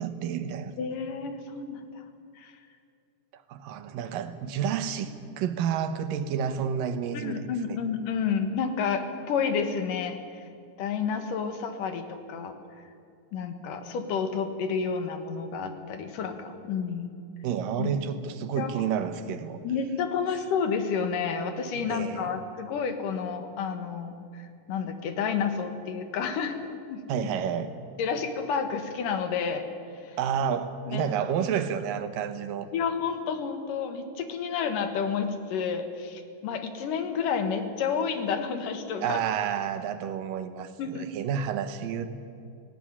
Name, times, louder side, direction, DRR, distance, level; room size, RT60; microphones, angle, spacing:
voice 1, 0.0-0.7 3.3-7.4 7.7-7.8 17.4-19.6 21.9-22.3 27.1-27.7 30.2-32.7 39.0-42.1, right 8 dB, 85° right, 10 dB, 2.8 m, -30 dB
voice 2, 0.8-2.0 2.4-2.5 7.1-10.5 10.8-12.5 13.3-17.1 17.8-17.9 18.6-18.8 19.6-26.6 26.9-27.0 28.0-29.7 30.0-30.2 30.9-31.1 32.7-39.2 40.8-41.1, left 6 dB, 75° left, 8 dB, 3.1 m, -30 dB
18.0 x 17.0 x 9.9 m, 2.4 s
omnidirectional pair, 3.8 m